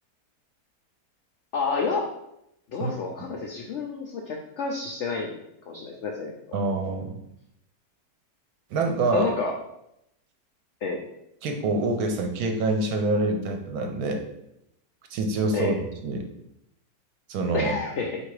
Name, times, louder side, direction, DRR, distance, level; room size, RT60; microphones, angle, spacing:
voice 1, 1.5-2.1 2.7-5.4 5.7-6.3 9.1-9.5 10.8-11.0 15.5-15.8 17.5-18.2, left 4 dB, 80° left, 1 dB, 0.6 m, -29 dB
voice 2, 6.5-7.2 8.7-9.3 11.4-14.2 15.1-16.3 17.3-17.7, right 2 dB, 70° right, 4 dB, 1.0 m, -26 dB
3.9 x 2.6 x 4.6 m, 0.80 s
omnidirectional pair, 1.8 m